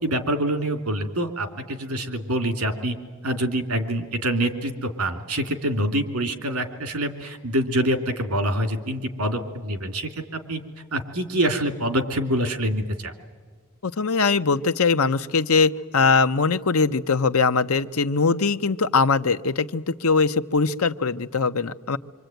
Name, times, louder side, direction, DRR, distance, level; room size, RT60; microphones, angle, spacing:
voice 1, 0.0-3.0 3.2-10.6 10.9-13.1, right 1 dB, 85° right, 7 dB, 3.1 m, -26 dB
voice 2, 13.8-22.0, left 4 dB, 75° left, 10 dB, 0.9 m, -21 dB
25.5 x 25.5 x 9.2 m, 1.5 s
head